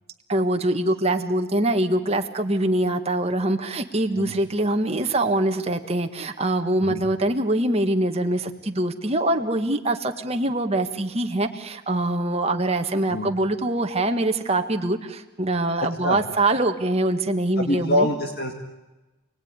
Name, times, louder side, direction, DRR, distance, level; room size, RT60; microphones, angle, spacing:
voice 1, 0.3-18.1, right 1 dB, 30° right, 5 dB, 1.7 m, -24 dB
voice 2, 17.6-18.5, left 1 dB, 50° left, 3 dB, 2.2 m, -25 dB
28.0 x 19.5 x 9.8 m, 1.1 s
head